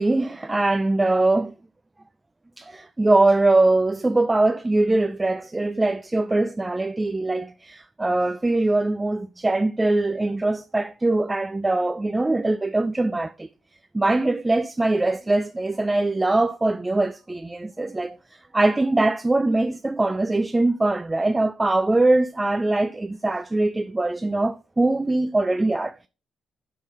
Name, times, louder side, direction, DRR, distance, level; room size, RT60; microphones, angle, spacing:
voice 1, 0.0-1.5 2.6-13.5 13.9-26.1, right 2 dB, 15° right, 0.4 m, -22 dB
7.2 x 3.7 x 4.7 m
cardioid pair, 90°, 0 cm